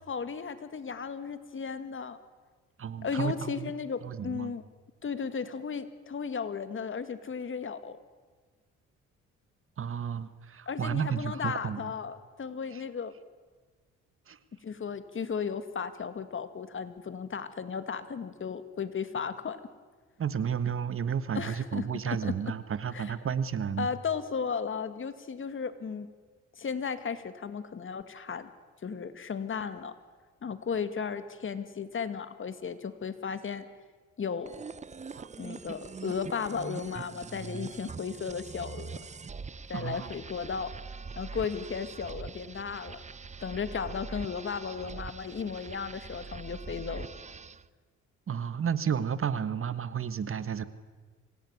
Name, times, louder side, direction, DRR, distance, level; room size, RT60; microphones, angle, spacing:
voice 1, 0.1-2.2 3.0-4.6 5.0-8.0 10.7-13.2 14.6-19.6 21.3-22.5 22.9-23.1 23.8-26.1 26.6-28.5 28.8-29.9 30.4-33.7 34.2-34.6 35.4-39.0 39.7-40.7 41.2-43.0 43.4-47.1, left 6 dB, 40° left, 11 dB, 2.1 m, -35 dB
voice 2, 2.8-3.7 4.0-4.5 9.8-11.9 12.7-12.8 14.3-14.4 19.1-19.2 20.2-23.9 35.1-35.3 39.7-40.1 48.3-50.6, right 7 dB, 45° right, 14 dB, 1.5 m, -32 dB
sound 1, 34.5-47.7, right 5 dB, 25° right, 0.7 m, -43 dB
26.0 x 17.0 x 9.7 m, 1.4 s
cardioid pair, 90°, 30 cm